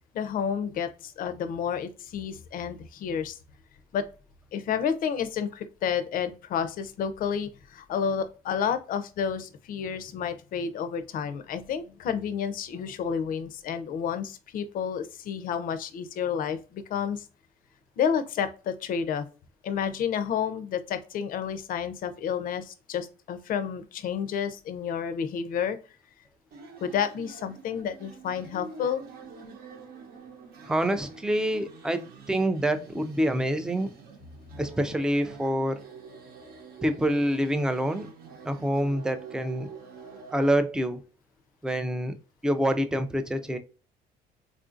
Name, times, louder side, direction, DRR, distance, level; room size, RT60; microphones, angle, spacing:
voice 1, 0.1-3.4 3.9-4.0 4.5-17.2 18.0-19.2 19.6-25.8 26.8-29.0, left 7 dB, 55° left, 0.5 m, -30 dB
sound 1, 26.5-40.5, right 4 dB, 65° right, 0.8 m, -46 dB
voice 2, 30.7-33.9 34.6-35.8 36.8-38.1 38.4-39.7 40.3-41.0 41.6-42.1 42.4-43.6, equal, 5° right, 0.3 m, -26 dB
3.6 x 2.4 x 2.5 m
cardioid pair, 110°, 17 cm